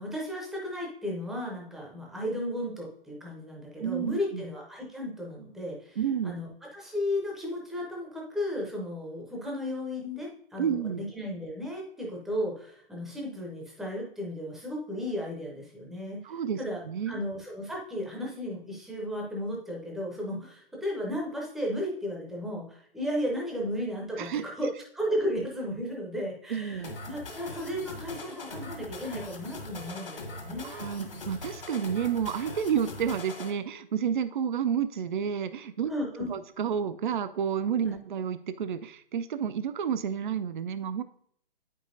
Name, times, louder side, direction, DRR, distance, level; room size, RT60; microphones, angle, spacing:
voice 1, 0.0-16.2 16.6-16.8 17.1-30.7 35.9-36.3 37.9-38.0, equal, ahead, -3 dB, 0.6 m, -34 dB
voice 2, 3.8-4.4 6.0-6.3 10.6-11.0 16.2-16.6 16.9-17.2 24.2-24.4 26.5-27.0 30.6-35.9 36.3-41.0, right 8 dB, 55° right, 12 dB, 0.4 m, -30 dB
sound 1, 26.8-33.5, left 2 dB, 70° left, 1.7 m, -41 dB
8.5 x 5.3 x 2.6 m, 0.65 s
figure-of-eight pair, 130°, 29 cm